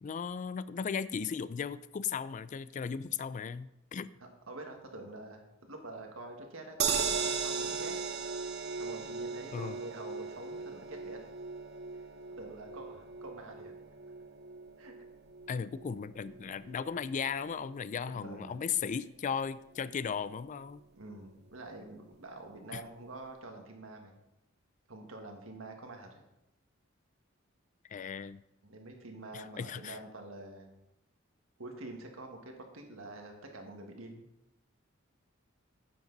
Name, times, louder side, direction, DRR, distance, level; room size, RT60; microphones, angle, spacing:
voice 1, 0.0-4.1 9.5-9.8 15.5-20.8 22.7-22.8 27.9-28.4 29.3-30.0, left 6 dB, 40° left, 17 dB, 0.3 m, -36 dB
voice 2, 4.2-8.0 8.8-11.2 12.3-13.7 14.8-14.9 18.0-18.6 20.9-24.1 24.9-26.2 28.6-30.7 31.6-34.3, right 2 dB, 75° right, 3 dB, 1.7 m, -47 dB
sound 1, 6.8-19.0 19.4-19.5 19.8-19.9, right 5 dB, 55° right, 0.9 m, -38 dB
10.5 x 7.7 x 4.0 m, 0.87 s
head